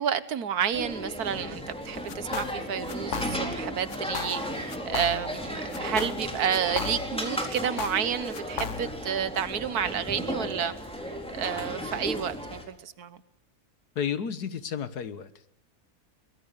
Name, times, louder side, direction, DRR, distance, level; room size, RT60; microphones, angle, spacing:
voice 1, 0.0-10.8 11.3-13.2, right 8 dB, 75° right, 1.6 m, -30 dB
sound 1, 0.7-12.6, equal, 5° left, 4.0 m, -35 dB
sound 2, 2.1-2.6 2.9-3.6 3.9-4.4 4.7-5.4 5.7-7.2 7.5-9.0, left 7 dB, 55° left, 1.3 m, -36 dB
voice 2, 14.0-15.5, left 7 dB, 80° left, 1.8 m, -32 dB
23.0 x 21.0 x 6.7 m
omnidirectional pair, 1.7 m